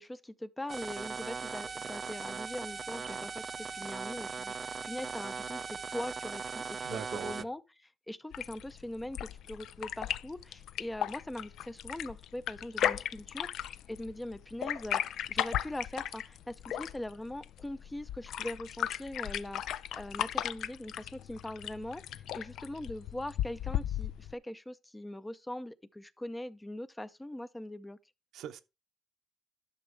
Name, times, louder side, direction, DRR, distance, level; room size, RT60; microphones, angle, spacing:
voice 1, 0.0-7.6 8.1-15.0 15.3-28.0, left 1 dB, 10° left, 0.6 m, -41 dB
sound 1, 0.7-7.4, right 5 dB, 40° right, 0.4 m, -39 dB
voice 2, 6.8-7.4 28.3-28.6, right 10 dB, 80° right, 0.7 m, -41 dB
sound 2, 8.3-24.3, left 11 dB, 80° left, 0.4 m, -36 dB
11.0 x 6.1 x 3.3 m
cardioid pair, 90°, 0 cm